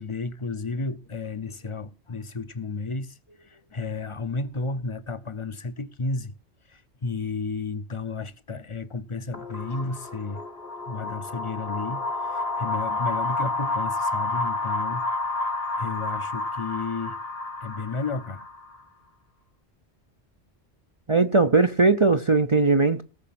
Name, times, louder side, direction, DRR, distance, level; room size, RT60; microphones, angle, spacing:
voice 1, 0.0-6.4 6.7-10.4 10.9-12.0 12.3-15.1 15.8-17.2 17.6-18.5, left 3 dB, 30° left, 0.8 m, -32 dB
sound 1, 9.3-18.8, left 2 dB, 70° left, 1.8 m, -30 dB
voice 2, 21.1-23.0, right 3 dB, 35° right, 0.6 m, -19 dB
18.5 x 6.5 x 5.9 m
omnidirectional pair, 1.1 m